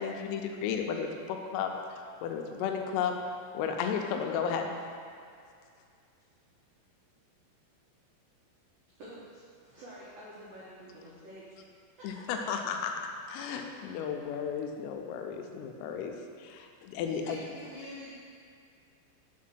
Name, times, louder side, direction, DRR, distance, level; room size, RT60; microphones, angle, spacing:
voice 1, 0.0-3.2 3.5-4.7 12.0-13.0 13.3-17.4, left 7 dB, 85° left, 3 dB, 3.3 m, -34 dB
voice 2, 9.0-11.6 12.0-12.1, equal, 85° right, -9 dB, 1.9 m, -49 dB
voice 3, 17.1-18.1, left 2 dB, 70° left, -9 dB, 2.1 m, -45 dB
7.3 x 4.3 x 6.0 m, 2.3 s
omnidirectional pair, 6.0 m